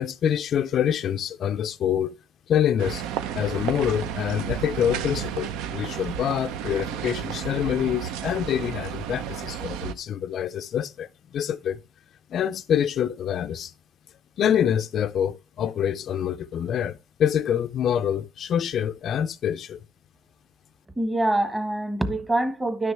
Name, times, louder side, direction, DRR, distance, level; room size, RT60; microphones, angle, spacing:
voice 1, 0.0-2.1 2.5-3.0 3.3-11.8 12.3-13.7 14.4-19.8, left 9 dB, 50° left, 0.3 m, -26 dB
sound 1, 2.8-9.9, right 9 dB, 80° right, 0.7 m, -32 dB
voice 2, 21.0-22.9, right 1 dB, 15° right, 1.2 m, -25 dB
10.5 x 6.4 x 3.3 m
cardioid pair, 120°, 0 cm